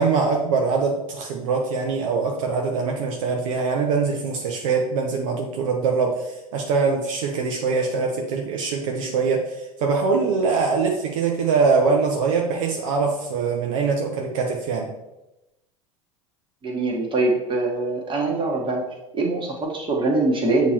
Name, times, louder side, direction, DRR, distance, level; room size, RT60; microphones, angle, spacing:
voice 1, 0.0-14.9, right 4 dB, 65° right, 1 dB, 0.8 m, -23 dB
voice 2, 16.6-18.8 19.1-20.7, right 2 dB, 30° right, -1 dB, 1.6 m, -23 dB
7.0 x 3.0 x 4.4 m, 0.94 s
hypercardioid pair, 80°, 18 cm